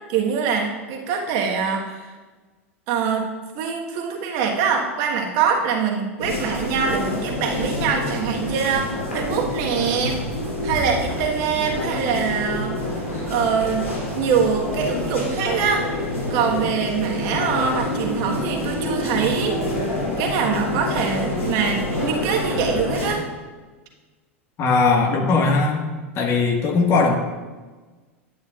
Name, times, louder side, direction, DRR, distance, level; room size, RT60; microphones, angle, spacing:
voice 1, 0.1-2.1 2.9-3.3 3.5-10.2 10.6-12.8 13.3-16.0 16.3-19.6 20.2-23.2, right 6 dB, 50° right, 1 dB, 1.4 m, -24 dB
sound 1, 6.2-23.1, left 1 dB, 85° left, 2.8 m, -27 dB
voice 2, 24.6-25.9 26.1-27.1, left 4 dB, 40° left, 2 dB, 1.5 m, -19 dB
11.0 x 9.2 x 2.4 m, 1.3 s
hypercardioid pair, 90°, 7 cm